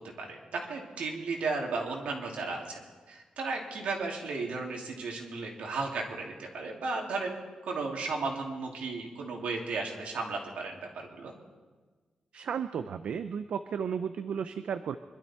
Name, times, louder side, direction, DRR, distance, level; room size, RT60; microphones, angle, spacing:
voice 1, 0.2-7.4 7.6-11.3, right 3 dB, 80° right, 0 dB, 2.9 m, -34 dB
voice 2, 12.3-15.0, right 7 dB, 65° right, 10 dB, 0.5 m, -34 dB
25.0 x 12.0 x 4.5 m, 1.4 s
wide cardioid pair, 160°, 2 cm